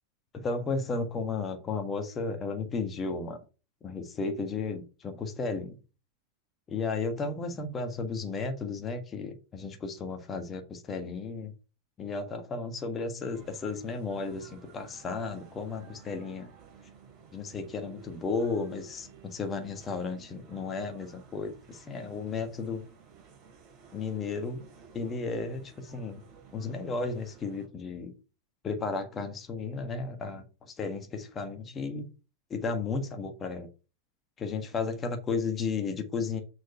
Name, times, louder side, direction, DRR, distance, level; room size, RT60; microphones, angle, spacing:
voice 1, 0.3-3.4 3.8-5.8 6.7-11.5 12.0-16.5 17.3-22.8 23.9-24.6 24.9-26.2 26.5-28.1 28.6-32.1 32.5-33.7 34.4-36.4, left 4 dB, 25° left, 6 dB, 1.4 m, -34 dB
sound 1, 13.3-27.7, right 6 dB, 35° right, 3.5 m, -54 dB
6.5 x 4.8 x 5.5 m, 0.33 s
figure-of-eight pair, 90°, 0 cm